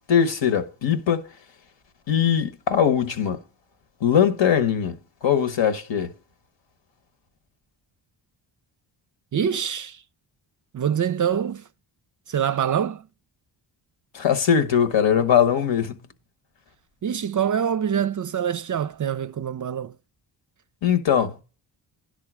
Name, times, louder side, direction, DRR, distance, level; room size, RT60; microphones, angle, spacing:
voice 1, 0.1-1.2 2.1-3.4 4.0-6.1 14.1-16.0 20.8-21.3, left 8 dB, 65° left, 1.3 m, -21 dB
voice 2, 9.3-10.0 10.7-11.6 12.3-13.1 17.0-19.9, right 8 dB, 40° right, 0.5 m, -25 dB
10.5 x 3.9 x 6.1 m
supercardioid pair, 50°, 48 cm